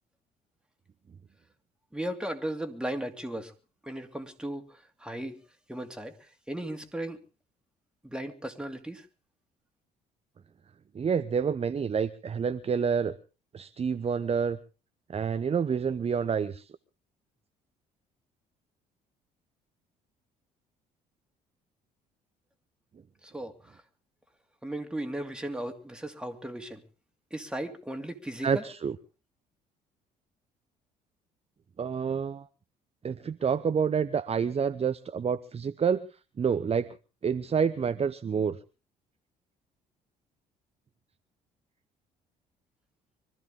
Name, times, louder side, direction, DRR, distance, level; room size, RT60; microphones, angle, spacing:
voice 1, 1.9-3.5 3.8-5.4 5.7-7.2 8.0-9.1 23.2-23.8 24.6-26.8 27.3-28.6, right 1 dB, 5° right, 5 dB, 2.6 m, -36 dB
voice 2, 10.9-13.2 13.5-14.6 15.1-16.7 28.4-29.0 31.8-32.5 33.0-36.0 36.4-36.9 37.2-38.6, right 6 dB, 30° right, 12 dB, 0.8 m, -28 dB
24.5 x 14.0 x 3.7 m, 0.34 s
hypercardioid pair, 50°, 20 cm